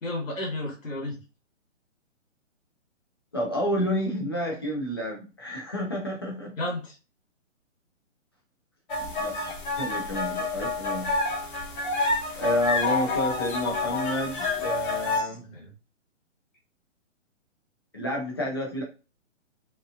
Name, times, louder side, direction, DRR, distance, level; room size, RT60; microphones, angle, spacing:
voice 1, 0.0-1.2 6.6-7.0 15.1-15.7, left 1 dB, 90° left, -1 dB, 1.1 m, -33 dB
voice 2, 3.3-6.5 9.0-11.1 12.3-15.4 17.9-18.8, equal, 20° left, -2 dB, 0.3 m, -30 dB
sound 1, 8.9-15.2, left 3 dB, 40° left, 0.8 m, -28 dB
2.8 x 2.2 x 2.4 m, 0.33 s
figure-of-eight pair, 135°, 38 cm